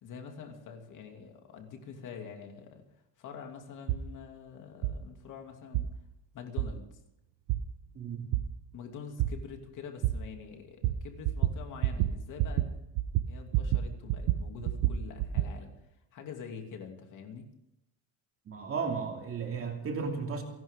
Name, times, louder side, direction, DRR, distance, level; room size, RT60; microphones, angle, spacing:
voice 1, 0.0-5.9 6.3-7.0 8.7-12.7 13.3-15.7 16.1-17.5, left 6 dB, 40° left, 3 dB, 2.8 m, -45 dB
sound 1, 3.9-4.0 4.8-4.9 5.7-5.9 6.6-6.7 7.5-7.6 8.3-8.4 9.2-9.3 10.0-10.1 10.8-11.0 11.2-11.6 11.8-12.1 12.4-12.7 13.0-13.8 14.1-15.5, right 14 dB, 55° right, 1.1 m, -27 dB
voice 2, 7.9-8.3 18.5-20.4, right 5 dB, 30° right, 2 dB, 2.7 m, -34 dB
30.0 x 12.0 x 3.8 m, 0.85 s
cardioid pair, 165°, 46 cm